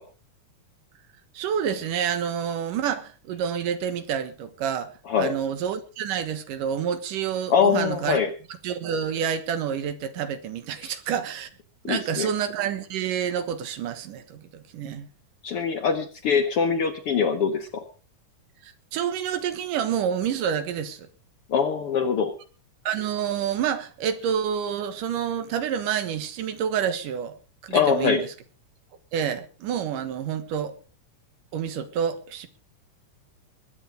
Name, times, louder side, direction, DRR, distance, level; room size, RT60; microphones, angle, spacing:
voice 1, 1.3-4.9 5.2-8.2 8.6-11.5 11.8-15.1 18.6-21.1 22.9-27.4 27.6-28.3 29.1-30.8 31.5-32.5, right 8 dB, 85° right, 3.0 m, -28 dB
voice 2, 7.5-8.3 10.8-10.9 11.8-12.3 15.4-17.8 21.5-22.3 27.7-28.2, left 6 dB, 65° left, 1.5 m, -23 dB
21.0 x 9.3 x 5.0 m
omnidirectional pair, 3.7 m